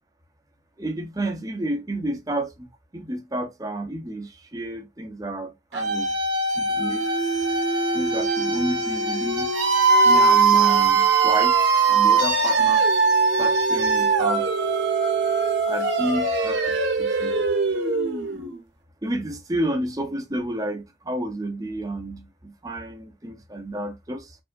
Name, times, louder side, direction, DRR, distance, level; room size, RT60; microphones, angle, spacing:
voice 1, 0.8-6.1 6.5-7.0 7.9-9.7 10.0-11.6 11.9-12.8 13.4-14.4 15.7-17.4 19.0-24.4, right 1 dB, 20° right, 0.7 m, -30 dB
sound 1, 5.7-18.6, right 4 dB, 90° right, 1.1 m, -21 dB
4.7 x 2.7 x 2.5 m
head